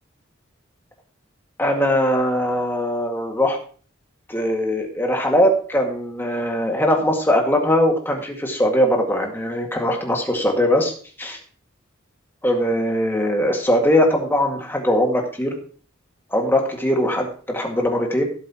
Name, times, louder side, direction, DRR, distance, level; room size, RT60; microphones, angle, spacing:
voice 1, 1.6-3.6 4.3-10.9 11.2-11.4 12.4-15.6 16.3-18.2, equal, 10° left, 1 dB, 2.0 m, -20 dB
17.0 x 7.7 x 3.0 m, 0.42 s
head